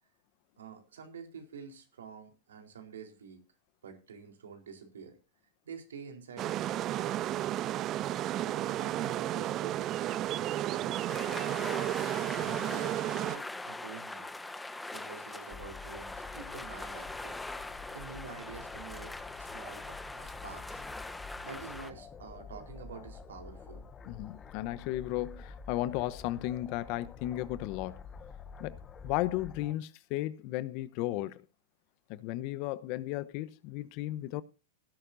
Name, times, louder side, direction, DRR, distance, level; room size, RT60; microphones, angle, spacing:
voice 1, 0.6-3.4 3.8-5.2 5.6-7.7 8.2-11.9 12.6-14.3 14.9-17.4 17.9-20.8 21.4-23.8, right 6 dB, 80° right, 4.1 m, -48 dB
sound 1, 6.4-13.4, right 13 dB, 35° right, 0.5 m, -33 dB
sound 2, 11.1-21.9, left 2 dB, 5° left, 1.1 m, -42 dB
sound 3, 15.5-29.7, left 5 dB, 25° left, 1.4 m, -48 dB
voice 2, 24.1-28.0 28.6-28.8 29.0-31.4 32.1-34.4, left 15 dB, 50° left, 0.9 m, -35 dB
17.5 x 11.0 x 2.7 m
hypercardioid pair, 110°, 0 cm